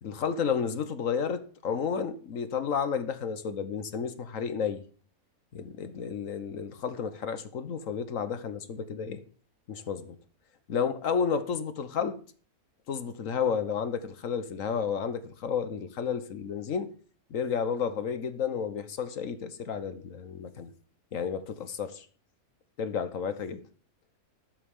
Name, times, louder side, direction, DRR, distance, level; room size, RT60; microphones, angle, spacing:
voice 1, 0.0-4.8 5.5-9.2 9.7-10.2 10.7-12.2 12.9-16.9 17.3-20.7 21.1-22.1 22.8-23.6, left 6 dB, 60° left, 1.4 m, -31 dB
19.5 x 7.6 x 3.7 m
omnidirectional pair, 1.6 m